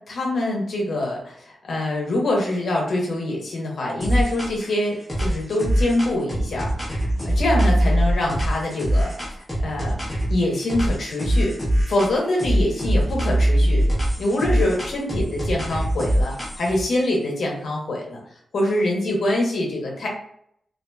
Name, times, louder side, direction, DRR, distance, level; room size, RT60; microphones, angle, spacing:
voice 1, 0.1-6.7 7.2-10.0 10.3-11.5 11.9-13.8 14.2-18.2 18.5-20.1, left 1 dB, 60° left, -2 dB, 0.8 m, -24 dB
sound 1, 4.0-4.7 5.1-10.4 10.7-12.1 12.4-16.8, equal, 10° left, 0.9 m, -22 dB
2.6 x 2.4 x 2.2 m, 0.68 s
wide cardioid pair, 135°, 0 cm